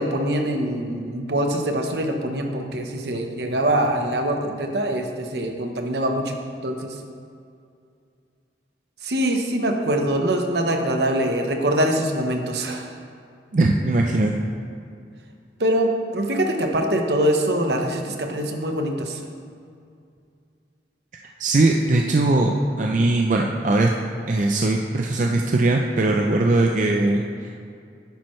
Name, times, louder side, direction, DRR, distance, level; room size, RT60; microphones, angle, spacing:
voice 1, 0.0-6.4 6.6-7.0 9.0-12.9 15.6-19.2, right 1 dB, 70° right, 3 dB, 1.0 m, -23 dB
voice 2, 13.5-14.3 21.4-24.0 24.3-27.6, right 2 dB, 45° right, 1 dB, 0.5 m, -20 dB
10.5 x 8.9 x 3.2 m, 2.4 s
head